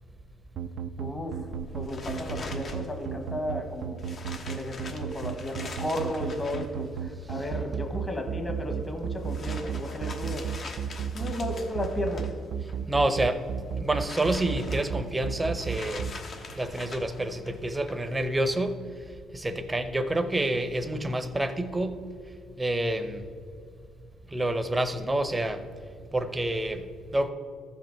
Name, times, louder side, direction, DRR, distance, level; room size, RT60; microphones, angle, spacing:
sound 1, 0.6-16.1, right 8 dB, 70° right, 0.4 m, -32 dB
voice 1, 1.0-1.4 1.7-4.0 4.5-10.5 11.1-12.3, left 1 dB, 20° left, 5 dB, 1.4 m, -34 dB
sound 2, 1.5-18.7, left 3 dB, 50° left, 1.1 m, -44 dB
voice 2, 12.9-13.4 13.8-16.1 16.6-18.8 19.3-22.0 22.6-23.2 24.3-25.6 26.1-27.3, right 1 dB, 15° right, 9 dB, 0.7 m, -28 dB
14.0 x 5.1 x 4.6 m, 2.2 s
cardioid pair, 95°, 0 cm